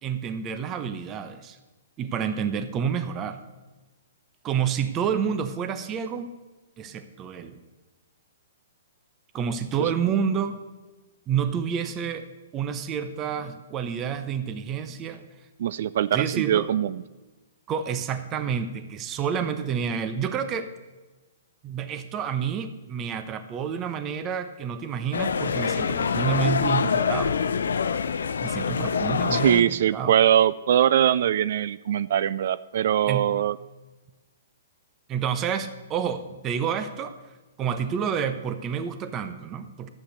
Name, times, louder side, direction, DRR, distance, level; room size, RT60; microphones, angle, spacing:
voice 1, 0.0-1.6 2.0-3.4 4.4-6.3 6.8-7.6 9.3-10.6 11.3-12.3 12.5-15.2 16.1-16.7 17.7-20.7 21.6-27.3 28.4-30.1 33.1-33.3 35.1-37.1 37.6-39.9, right 7 dB, 25° right, 10 dB, 0.9 m, -29 dB
voice 2, 15.6-17.0 29.3-33.6, right 10 dB, 60° right, 17 dB, 0.3 m, -22 dB
sound 1, 25.1-29.6, left 6 dB, 80° left, 0.7 m, -25 dB
11.5 x 8.6 x 6.6 m, 1.2 s
hypercardioid pair, 135°, 0 cm